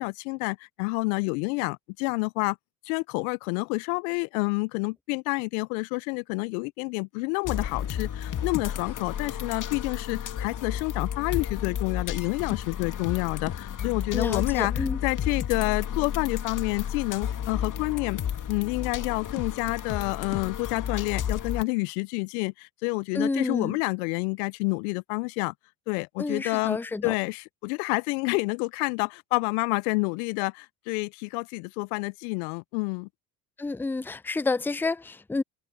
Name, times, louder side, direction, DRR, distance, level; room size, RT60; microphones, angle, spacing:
voice 1, 0.0-2.6 2.9-18.2 18.5-25.5 25.9-26.8 27.0-33.1, left 30 dB, 75° left, 0.6 m, -29 dB
sound 1, 7.4-21.6, left 9 dB, 45° left, 2.3 m, -32 dB
voice 2, 14.1-15.0 23.1-23.8 26.2-27.1 33.6-35.4, left 3 dB, 5° left, 0.5 m, -29 dB
hypercardioid pair, 65°, 44 cm